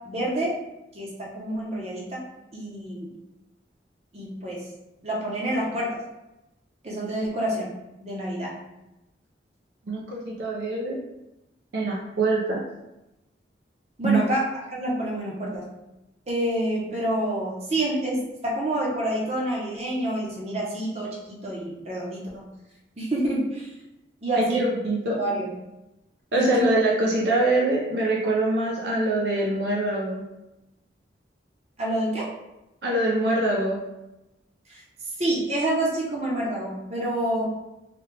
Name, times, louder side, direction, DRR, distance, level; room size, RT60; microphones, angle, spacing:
voice 1, 0.1-0.5 0.9-2.2 2.5-3.1 4.1-4.6 5.0-6.0 6.8-7.7 8.0-8.5 14.0-14.5 14.8-15.6 16.3-22.5 23.0-23.7 24.2-24.7 25.2-25.5 26.3-26.7 31.8-32.3 34.7-34.8 35.2-37.5, right 1 dB, 35° right, -4 dB, 0.8 m, -27 dB
voice 2, 9.9-11.0 11.7-12.6 14.0-14.2 24.3-25.2 26.3-30.2 32.8-33.8, right 2 dB, 65° right, -3 dB, 0.5 m, -24 dB
3.3 x 2.3 x 3.2 m, 0.95 s
head